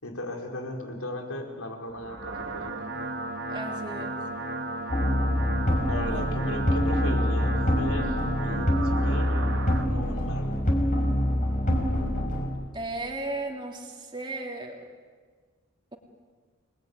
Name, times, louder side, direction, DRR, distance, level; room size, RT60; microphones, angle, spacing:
voice 1, 0.0-2.9 5.9-9.4 9.9-10.6, left 1 dB, 85° left, 3 dB, 4.9 m, -37 dB
sound 1, 1.9-9.9, right 2 dB, 60° right, 1.9 m, -34 dB
voice 2, 3.5-4.1 6.0-6.2 12.7-14.8, right 2 dB, 20° right, 1 dB, 2.9 m, -35 dB
sound 2, 4.9-12.5, equal, 35° left, 5.3 m, -25 dB
30.0 x 20.5 x 9.6 m, 1.5 s
head